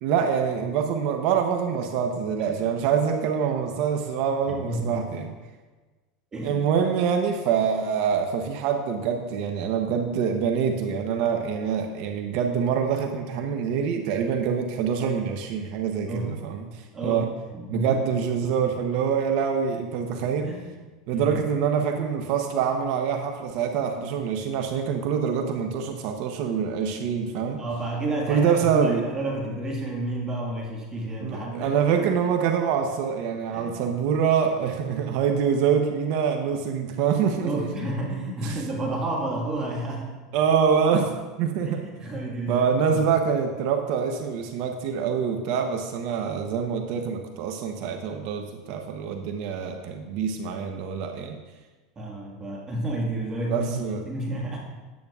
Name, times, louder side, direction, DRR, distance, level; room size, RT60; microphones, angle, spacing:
voice 1, 0.0-5.3 6.4-17.3 17.7-20.5 21.1-27.6 28.3-29.0 31.2-37.7 38.4-38.6 40.3-41.8 42.5-51.4 53.5-54.0, right 7 dB, 60° right, 4 dB, 0.8 m, -25 dB
voice 2, 4.5-5.0 6.3-6.6 16.1-16.4 16.9-17.2 17.5-18.0 20.4-20.7 21.1-21.5 27.6-31.8 33.5-33.8 37.4-40.1 41.6-43.0 51.9-54.6, right 1 dB, 20° right, -2 dB, 1.7 m, -30 dB
10.0 x 9.4 x 2.4 m, 1.3 s
supercardioid pair, 125°, 3 cm